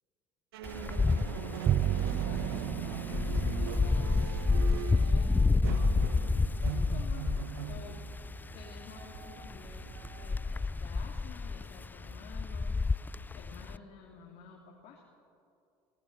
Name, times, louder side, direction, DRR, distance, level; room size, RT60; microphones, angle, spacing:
sound 1, 0.5-10.6, right 10 dB, 80° right, 1.3 m, -41 dB
Wind, 0.6-13.8, left 4 dB, 15° left, 0.4 m, -30 dB
voice 1, 0.7-1.3 1.8-2.6 3.1-7.3 7.7-8.0 8.5-9.8 10.1-12.8 13.3-15.0, left 6 dB, 60° left, -1 dB, 3.0 m, -51 dB
Bowed string instrument, 1.6-8.1, right 10 dB, 40° right, 0.6 m, -36 dB
23.5 x 17.5 x 7.3 m, 2.6 s
hypercardioid pair, 70°, 13 cm